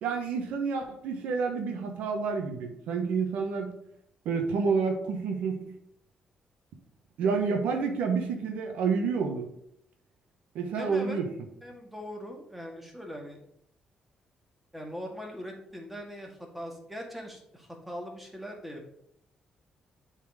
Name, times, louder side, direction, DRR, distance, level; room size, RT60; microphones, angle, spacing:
voice 1, 0.0-3.7 4.2-5.6 7.2-9.5 10.5-11.3, right 5 dB, 90° right, 4 dB, 1.1 m, -29 dB
voice 2, 10.8-11.2 11.6-13.4 14.7-18.9, equal, 5° right, 1 dB, 1.9 m, -41 dB
7.3 x 4.2 x 5.0 m, 0.72 s
cardioid pair, 85°, 2 cm